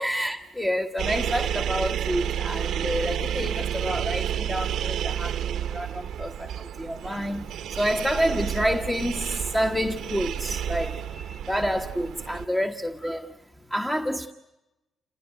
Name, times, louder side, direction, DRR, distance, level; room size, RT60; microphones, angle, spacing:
voice 1, 0.0-5.3 5.7-6.5 6.8-9.2 9.5-13.3 13.7-14.3, equal, 5° left, 1.4 m, -28 dB
sound 1, 1.0-12.5, right 10 dB, 75° right, 1.0 m, -30 dB
29.0 x 17.5 x 9.4 m
cardioid pair, 90°, 0 cm